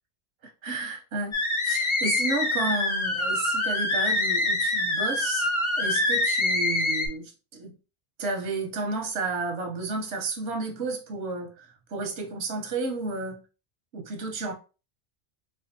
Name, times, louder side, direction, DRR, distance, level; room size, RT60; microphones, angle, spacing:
voice 1, 0.4-1.3 1.6-5.5 5.8-7.7 8.2-13.4 13.9-14.5, right 3 dB, 90° right, 1.0 m, -32 dB
sound 1, 1.3-7.1, left 2 dB, 35° left, 0.6 m, -25 dB
4.3 x 2.3 x 2.6 m
omnidirectional pair, 1.1 m